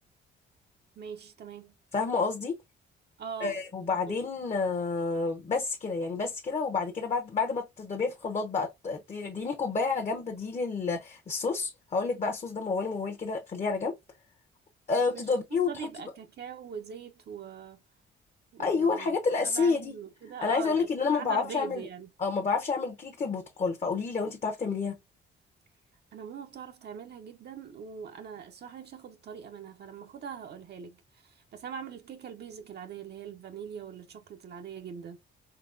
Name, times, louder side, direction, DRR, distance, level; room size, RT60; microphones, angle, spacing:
voice 1, 1.0-1.7 3.2-3.6 4.1-4.2 15.1-15.3 15.6-17.8 18.5-22.1 26.1-31.0 31.2-35.2, right 7 dB, 55° right, 0.7 m, -42 dB
voice 2, 1.9-2.6 3.4-14.0 14.9-15.9 18.6-19.9 20.4-21.8 22.2-25.0, left 4 dB, 35° left, 0.8 m, -29 dB
3.9 x 2.8 x 2.5 m
cardioid pair, 90°, 20 cm